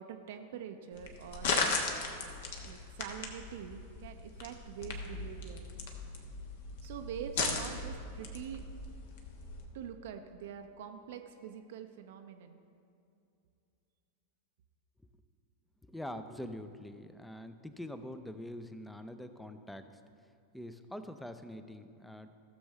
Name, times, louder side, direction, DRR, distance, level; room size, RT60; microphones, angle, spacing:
voice 1, 0.0-1.7 2.6-5.7 6.8-8.6 9.7-12.6, right 8 dB, 55° right, 6 dB, 0.6 m, -45 dB
sound 1, 0.9-9.7, left 3 dB, 55° left, 1.2 m, -37 dB
voice 2, 15.9-19.8 20.5-22.3, left 1 dB, 5° left, 10 dB, 0.5 m, -44 dB
16.0 x 7.0 x 3.3 m, 2.5 s
figure-of-eight pair, 90°, 0 cm